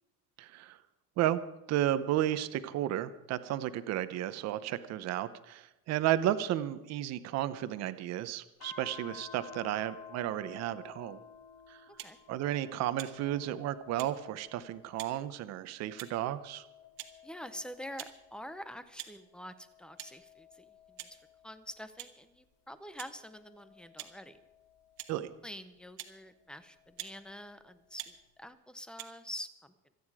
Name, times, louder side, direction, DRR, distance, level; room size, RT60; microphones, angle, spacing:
voice 1, 0.4-0.8 1.2-1.4 1.7-11.2 11.7-11.8 12.3-16.6 25.1-25.3, right 13 dB, 45° right, 13 dB, 0.9 m, -33 dB
sound 1, 8.6-15.3 15.8-18.7 19.3-22.0 22.8-25.2 26.6-27.7, left 8 dB, 55° left, 3.2 m, -54 dB
sound 2, 12.0-12.2 13.0-13.1 14.0-14.1 15.0-15.1 16.0-16.2 17.0-17.1 18.0-18.1 19.0-19.1 20.0-20.1 21.0-21.1 22.0-22.1 23.0-23.1 24.0-24.1 25.0-25.1 26.0-26.1 27.0-27.1 28.0-28.1 29.0-29.1, right 15 dB, 75° right, 1.9 m, -44 dB
voice 2, 17.2-21.2 21.4-24.4 25.4-29.7, equal, ahead, 12 dB, 0.6 m, -46 dB
26.0 x 9.5 x 4.8 m, 0.97 s
cardioid pair, 175°, 38 cm